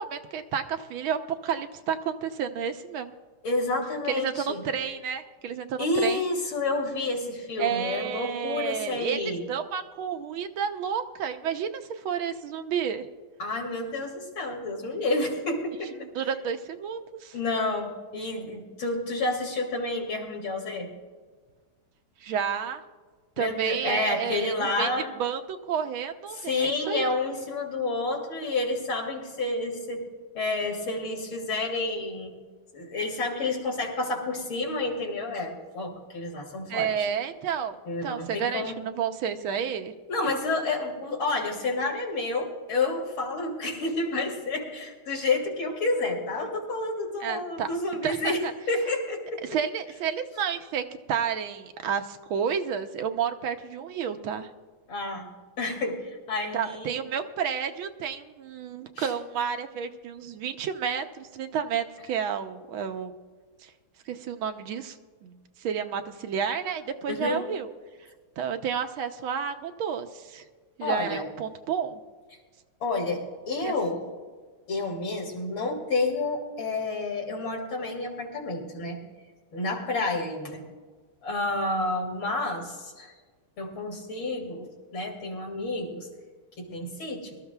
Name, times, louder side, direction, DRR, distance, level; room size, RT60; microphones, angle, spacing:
voice 1, 0.0-3.1 4.1-6.2 7.6-13.1 16.0-17.3 22.2-22.8 23.4-24.9 25.2-27.1 36.7-39.9 47.2-47.7 48.0-48.5 49.4-54.5 56.5-63.1 63.6-63.7 64.1-65.0 65.2-67.7 68.4-70.4 70.8-72.0 73.6-73.7, right 7 dB, 80° right, 7 dB, 1.6 m, -31 dB
voice 2, 3.4-4.6 5.8-9.4 13.4-15.9 17.3-20.9 23.4-25.1 26.3-30.0 30.3-32.3 32.7-37.1 37.8-38.8 40.1-48.4 48.7-49.4 54.9-55.3 55.6-57.0 59.0-59.1 67.1-67.4 70.8-71.3 72.8-74.0 74.7-79.0 79.5-80.6 81.2-83.1 83.6-84.7 84.9-86.1 86.6-87.4, left 2 dB, 70° left, -1 dB, 3.4 m, -29 dB
23.5 x 13.5 x 2.3 m, 1.5 s
omnidirectional pair, 2.3 m